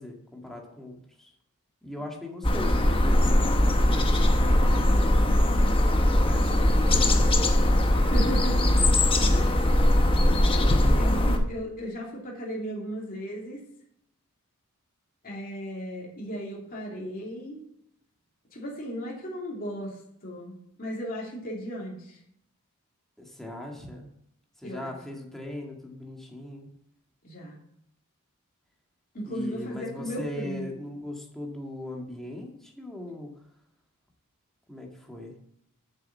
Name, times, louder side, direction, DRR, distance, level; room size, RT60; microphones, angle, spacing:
voice 1, 0.0-1.3 1.8-5.6 6.1-7.4 23.2-24.1 24.6-26.7 29.3-33.4 34.7-35.4, left 1 dB, ahead, 0 dB, 1.9 m, -40 dB
sound 1, 2.4-11.4, left 1 dB, 25° left, 1.1 m, -21 dB
voice 2, 8.1-8.8 9.3-9.5 10.9-13.6 15.2-17.7 18.5-22.2 24.6-25.0 27.2-27.6 29.1-30.8, equal, 40° left, -3 dB, 2.9 m, -36 dB
8.8 x 6.7 x 7.2 m, 0.72 s
head